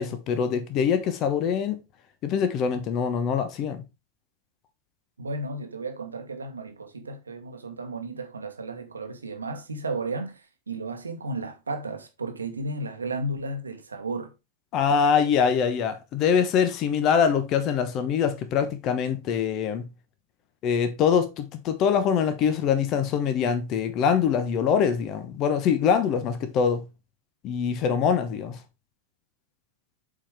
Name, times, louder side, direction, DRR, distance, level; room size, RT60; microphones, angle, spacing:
voice 1, 0.0-1.8 2.2-3.8 14.7-19.8 20.6-26.8 27.4-28.6, left 7 dB, 35° left, 1.0 m, -24 dB
voice 2, 5.2-14.3, right 2 dB, 75° right, 1.2 m, -34 dB
7.4 x 4.4 x 3.4 m
figure-of-eight pair, 90°, 0 cm